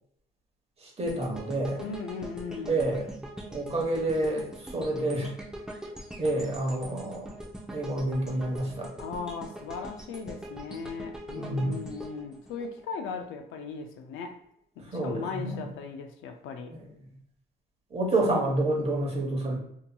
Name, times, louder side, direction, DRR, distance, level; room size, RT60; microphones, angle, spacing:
voice 1, 0.8-1.9 2.7-3.2 3.5-5.3 6.2-7.3 7.7-8.9 11.3-11.8 14.8-15.7 16.7-16.9 17.9-19.6, right 2 dB, 30° right, -1 dB, 1.0 m, -29 dB
sound 1, 1.1-13.2 13.7-13.8, right 1 dB, 5° right, 0.5 m, -43 dB
voice 2, 1.8-2.9 9.0-14.4 14.8-16.7, left 5 dB, 85° left, 6 dB, 0.5 m, -38 dB
2.7 x 2.7 x 2.2 m, 0.73 s
cardioid pair, 90°, 20 cm